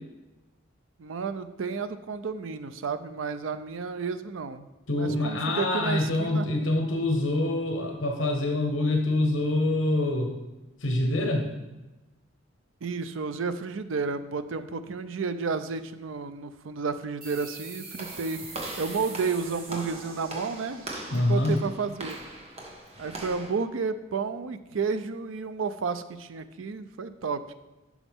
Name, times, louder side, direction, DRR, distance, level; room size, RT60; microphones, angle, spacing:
voice 1, 1.0-4.7 5.0-6.5 12.8-18.4 18.8-20.8 21.1-22.2 23.0-27.5, right 5 dB, 85° right, 11 dB, 0.5 m, -31 dB
voice 2, 4.9-10.4 10.8-11.5 21.1-21.6, left 2 dB, 75° left, 2 dB, 1.1 m, -25 dB
sound 1, 17.2-22.4, right 4 dB, 50° right, 1.5 m, -45 dB
Walk footsteps / Slam, 18.0-23.5, right 1 dB, 35° right, 1.4 m, -40 dB
11.0 x 6.1 x 3.6 m, 1.1 s
head